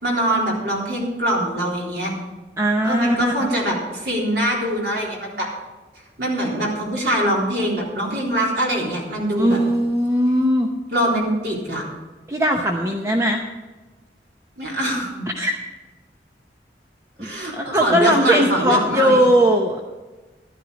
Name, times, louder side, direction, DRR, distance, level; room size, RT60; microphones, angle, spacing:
voice 1, 0.0-2.1 2.8-5.5 6.2-9.6 10.9-11.8 14.6-15.3 17.2-19.3, right 1 dB, 70° right, -3 dB, 3.8 m, -23 dB
voice 2, 2.6-3.5 9.4-10.7 12.3-13.4 15.4-15.6 17.2-19.8, equal, 15° right, 1 dB, 0.8 m, -19 dB
12.5 x 11.0 x 5.1 m, 1.2 s
head